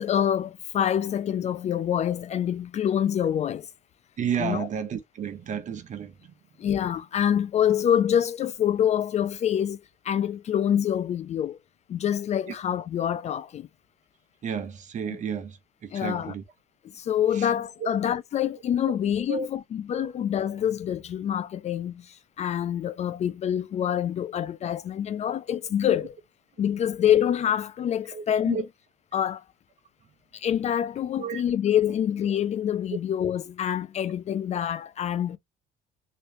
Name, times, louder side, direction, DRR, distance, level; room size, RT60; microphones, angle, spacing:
voice 1, 0.0-3.7 4.4-4.7 6.6-9.8 10.0-11.6 11.9-13.7 15.1-15.2 15.9-16.3 16.9-26.2 26.6-28.6 29.1-29.4 30.3-35.4, left 9 dB, 40° left, 0.4 m, -26 dB
voice 2, 4.2-6.3 12.5-12.6 14.4-16.4 17.3-17.5 17.8-17.9 19.3-19.5 28.1-28.6 31.2-31.4, right 7 dB, 45° right, 0.9 m, -32 dB
3.1 x 3.1 x 2.9 m
cardioid pair, 110°, 17 cm